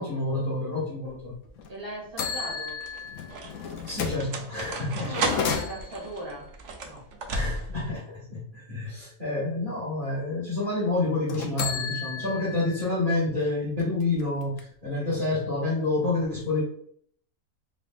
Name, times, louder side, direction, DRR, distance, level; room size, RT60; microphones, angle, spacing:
voice 1, 0.0-1.3 3.9-5.3 7.3-16.6, left 2 dB, 35° right, -9 dB, 2.0 m, -28 dB
sound 1, 1.1-1.6 2.4-7.9, right 3 dB, 60° right, 1.0 m, -34 dB
sound 2, 1.6-1.7 2.2-4.3 5.0-6.2 11.3-12.9 13.3-13.4 13.8-14.9, left 6 dB, 65° left, 1.0 m, -33 dB
voice 2, 1.7-2.8 4.8-6.5 6.8-7.0, right 1 dB, 20° right, -5 dB, 1.9 m, -39 dB
4.8 x 3.8 x 2.4 m, 0.62 s
omnidirectional pair, 1.5 m